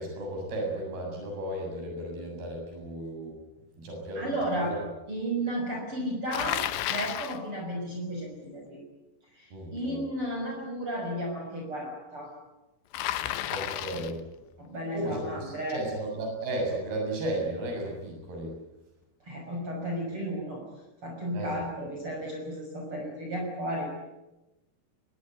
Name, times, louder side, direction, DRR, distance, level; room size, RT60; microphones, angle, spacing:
voice 1, 0.0-3.4 3.8-4.3 4.7-4.8 9.5-10.0 13.5-14.2 14.9-18.5 21.3-21.5, right 1 dB, 60° right, 1 dB, 9.4 m, -34 dB
voice 2, 4.1-4.8 5.1-8.8 9.3-12.3 13.9-14.0 14.6-15.8 19.2-20.6 21.0-23.8, right 1 dB, 30° right, 0 dB, 6.5 m, -33 dB
Bicycle, 6.3-7.4 12.9-14.2, left 13 dB, 85° left, 3.4 m, -32 dB
23.0 x 22.5 x 9.4 m, 1.0 s
omnidirectional pair, 4.9 m